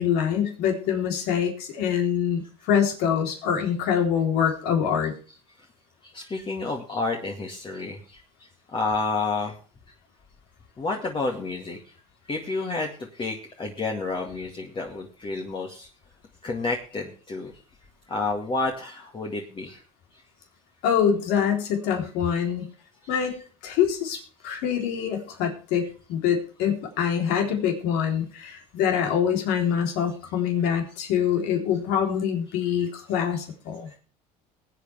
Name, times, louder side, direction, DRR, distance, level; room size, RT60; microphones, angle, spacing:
voice 1, 0.0-5.1 20.8-22.7 23.1-23.3 23.6-25.8 26.1-34.0, left 8 dB, 70° left, 2 dB, 3.6 m, -25 dB
voice 2, 6.0-8.2 8.7-9.5 10.8-11.8 12.3-15.9 16.4-17.5 18.1-19.8 22.3-22.4 23.2-23.4 25.8-25.9 32.7-32.9 33.3-33.4, left 3 dB, 30° left, 1 dB, 2.1 m, -30 dB
21.0 x 8.8 x 3.5 m, 0.39 s
supercardioid pair, 85°, 17 cm